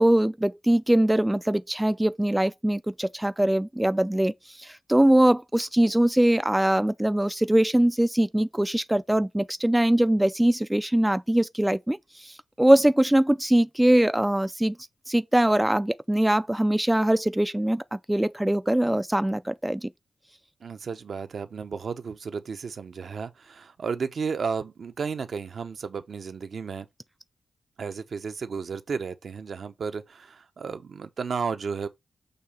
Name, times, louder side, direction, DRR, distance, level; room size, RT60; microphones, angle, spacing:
voice 1, 0.0-14.8 15.1-19.9, right 1 dB, 10° right, 0.4 m, -22 dB
voice 2, 20.6-26.9 27.8-31.9, right 5 dB, 65° right, 0.8 m, -33 dB
6.7 x 2.8 x 5.6 m
cardioid pair, 70°, 0 cm